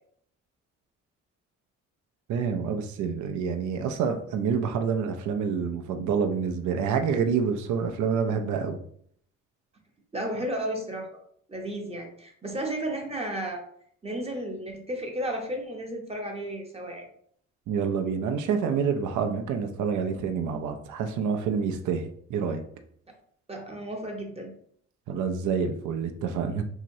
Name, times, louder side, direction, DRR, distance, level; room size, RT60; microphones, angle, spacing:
voice 1, 2.3-8.8 17.7-22.6 25.1-26.6, right 6 dB, 75° right, 6 dB, 0.5 m, -27 dB
voice 2, 10.1-11.1 11.5-13.6 14.0-17.1 23.5-24.5, right 1 dB, 20° right, 2 dB, 0.7 m, -33 dB
3.0 x 2.8 x 2.6 m, 0.63 s
cardioid pair, 90°, 30 cm